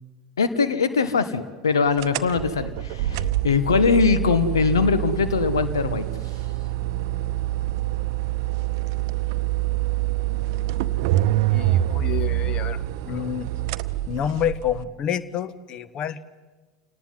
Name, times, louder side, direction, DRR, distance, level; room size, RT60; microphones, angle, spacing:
voice 1, 0.4-6.1, left 5 dB, 75° left, 12 dB, 1.6 m, -22 dB
sound 1, 2.0-14.8, right 15 dB, 55° right, 0.8 m, -26 dB
voice 2, 11.5-12.8 13.1-13.5 14.1-16.2, left 9 dB, 40° left, 16 dB, 1.3 m, -28 dB
27.5 x 19.0 x 9.6 m, 1.3 s
figure-of-eight pair, 75°, 2 cm